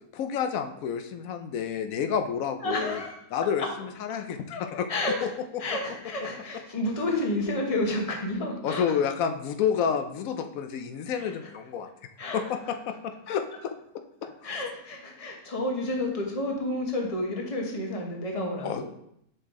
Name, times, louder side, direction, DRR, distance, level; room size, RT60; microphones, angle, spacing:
voice 1, 0.1-3.0 3.3-4.9 5.2-5.3 5.5-5.6 8.6-11.9 12.3-13.7 14.4-14.5 18.6-18.8, left 7 dB, 75° left, 7 dB, 1.0 m, -29 dB
voice 2, 2.6-3.2 3.6-3.7 4.9-5.3 5.6-9.0 11.2-11.3 12.2-12.7 14.4-18.8, left 1 dB, 25° left, 1 dB, 1.0 m, -30 dB
5.6 x 5.3 x 3.7 m, 0.73 s
omnidirectional pair, 1.5 m